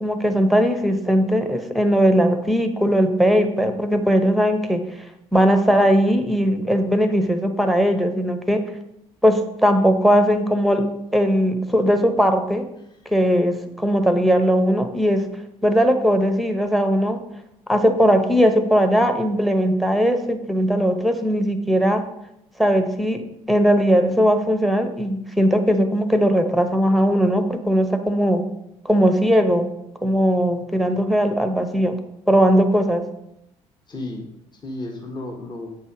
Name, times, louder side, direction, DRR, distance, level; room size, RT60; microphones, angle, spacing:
voice 1, 0.0-4.8 5.3-8.6 9.2-10.9 11.1-12.6 13.1-15.3 15.6-17.2 17.7-22.0 22.6-28.4 28.8-29.7 30.0-32.0 32.3-33.0, equal, ahead, 7 dB, 1.0 m, -19 dB
voice 2, 33.9-35.7, left 2 dB, 25° left, 1 dB, 1.6 m, -33 dB
8.1 x 5.4 x 4.9 m, 0.82 s
figure-of-eight pair, 50°, 17 cm